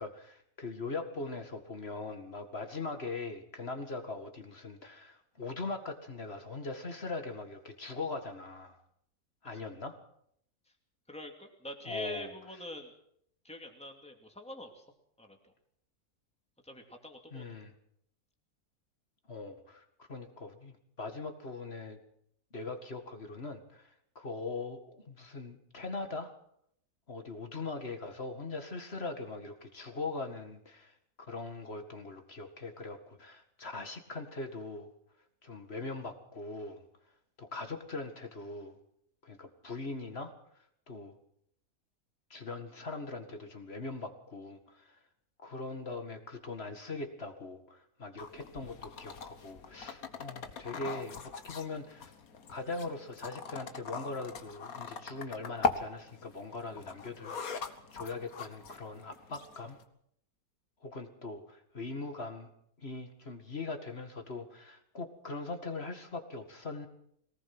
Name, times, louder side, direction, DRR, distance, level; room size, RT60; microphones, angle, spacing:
voice 1, 0.0-8.8 9.4-10.0 11.9-12.3 17.3-17.7 19.3-22.0 22.5-26.3 27.1-34.9 35.4-36.8 37.4-38.8 39.2-41.1 42.3-45.0 45.4-52.1 52.5-59.8 60.8-62.5 62.8-66.9, left 3 dB, 40° left, 6 dB, 2.3 m, -41 dB
voice 2, 11.1-12.9 13.4-14.8 15.2-15.4 16.6-17.5, left 1 dB, 5° left, 2 dB, 2.6 m, -44 dB
sound 1, 48.2-59.8, left 5 dB, 65° left, 1.8 m, -40 dB
22.5 x 18.5 x 6.2 m, 0.71 s
omnidirectional pair, 1.6 m